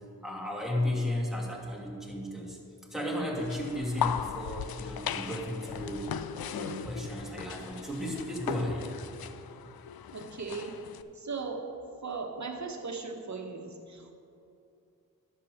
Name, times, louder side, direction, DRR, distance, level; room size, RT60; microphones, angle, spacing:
voice 1, 0.2-2.6 2.9-6.2 6.5-8.9, left 1 dB, ahead, -2 dB, 2.4 m, -34 dB
sound 1, 3.4-11.0, left 9 dB, 80° left, 0.5 m, -38 dB
voice 2, 10.1-10.8 11.1-11.7 12.0-14.1, right 4 dB, 50° right, 3 dB, 1.4 m, -38 dB
10.5 x 6.9 x 6.6 m, 2.6 s
cardioid pair, 50°, 36 cm